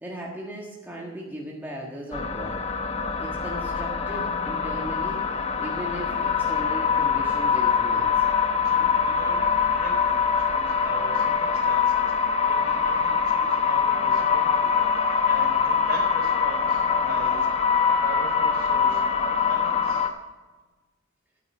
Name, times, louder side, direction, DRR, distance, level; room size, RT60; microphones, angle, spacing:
voice 1, 0.0-2.6 3.2-5.2 5.6-8.3, equal, 10° right, -3 dB, 1.5 m, -37 dB
sound 1, 2.1-20.1, left 6 dB, 30° left, 1.0 m, -23 dB
voice 2, 8.6-17.5 17.8-20.1, right 2 dB, 50° right, 2 dB, 3.8 m, -41 dB
13.0 x 9.2 x 6.1 m, 1.3 s
head